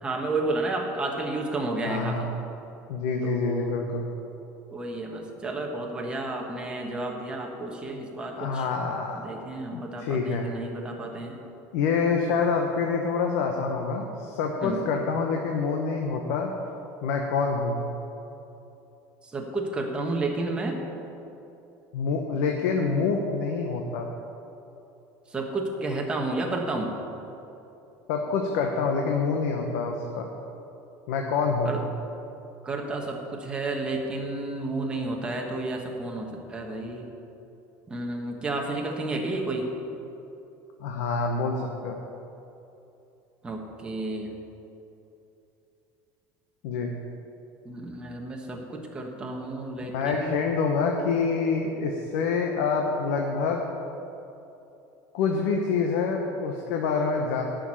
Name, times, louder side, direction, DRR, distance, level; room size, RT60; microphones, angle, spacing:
voice 1, 0.0-2.3 3.2-3.7 4.7-8.7 9.1-11.4 14.6-14.9 19.2-20.8 25.3-26.9 31.6-31.8 32.6-37.1 37.9-39.7 43.4-44.3 47.6-50.3, right 2 dB, 10° right, 0 dB, 1.3 m, -31 dB
voice 2, 1.9-2.3 2.9-4.1 8.4-9.2 9.7-10.5 11.7-16.5 17.0-17.8 21.9-24.1 28.1-30.3 31.1-31.7 40.8-42.0 46.6-46.9 49.9-53.6 55.1-57.4, left 5 dB, 80° left, 2 dB, 1.1 m, -26 dB
11.0 x 6.4 x 8.9 m, 2.9 s
cardioid pair, 170°, 8 cm